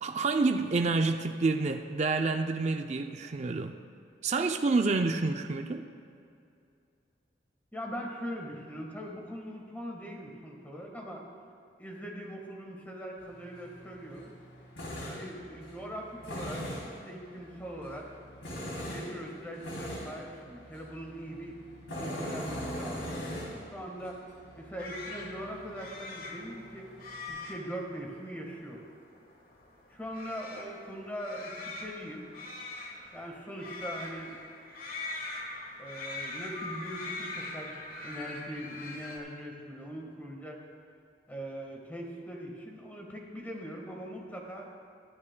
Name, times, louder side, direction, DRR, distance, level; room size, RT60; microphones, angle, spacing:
voice 1, 0.0-3.8 4.2-5.9, right 3 dB, 35° right, 5 dB, 0.4 m, -28 dB
voice 2, 7.7-11.2 11.8-14.3 15.1-18.1 18.9-21.6 22.0-23.1 23.4-24.2 24.6-26.9 27.3-28.8 29.9-32.3 33.1-34.4 35.8-40.6 41.3-44.7, equal, 10° left, -1 dB, 1.4 m, -41 dB
Tools, 13.2-27.3, equal, 90° left, 2.9 m, -42 dB
sound 1, 24.8-39.2, left 2 dB, 50° left, 1.3 m, -42 dB
23.5 x 9.8 x 2.2 m, 2.5 s
head